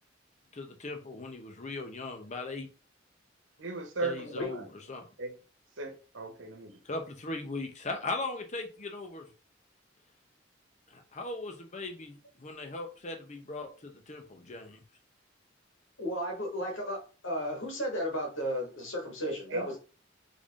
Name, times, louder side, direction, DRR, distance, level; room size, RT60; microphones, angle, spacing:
voice 1, 0.5-2.7 4.0-5.1 6.8-9.2 10.9-14.8, left 2 dB, 40° left, 5 dB, 0.9 m, -39 dB
voice 2, 3.6-4.3 5.2-5.4 5.8-6.7 19.2-19.8, right 2 dB, 75° right, 6 dB, 1.0 m, -36 dB
voice 3, 16.0-17.0 17.2-19.8, equal, 85° left, 0 dB, 1.9 m, -34 dB
3.9 x 3.5 x 3.7 m, 0.35 s
head